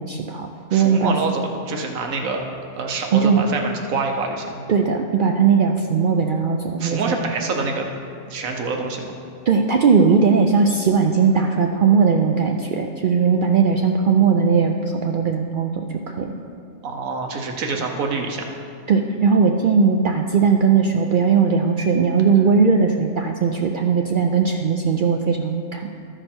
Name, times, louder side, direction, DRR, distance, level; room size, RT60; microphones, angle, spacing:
voice 1, 0.0-1.1 3.1-3.4 4.7-7.3 9.5-16.3 18.9-25.9, right 5 dB, 70° right, 2 dB, 0.4 m, -18 dB
voice 2, 0.7-2.4 2.7-4.6 6.8-7.9 8.3-9.1 16.8-18.4, right 4 dB, 90° right, 2 dB, 1.3 m, -26 dB
13.5 x 4.9 x 4.4 m, 2.4 s
omnidirectional pair, 1.4 m